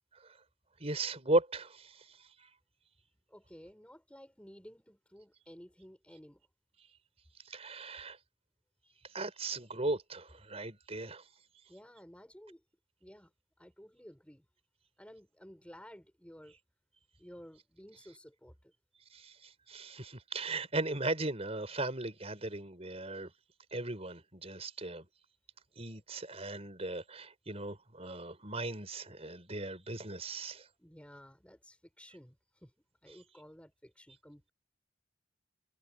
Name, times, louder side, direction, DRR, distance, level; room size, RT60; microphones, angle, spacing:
voice 1, 0.8-2.5 6.8-6.9 7.4-8.2 9.0-11.3 19.1-23.3 23.7-25.0 25.8-30.7, right 2 dB, 35° right, 5.6 m, -37 dB
voice 2, 3.3-6.4 8.8-8.9 11.7-12.6 13.0-13.3 13.6-14.5 15.0-16.6 17.2-18.7 30.8-32.4 32.6-32.7 33.0-34.5, equal, 5° left, 7.1 m, -54 dB
head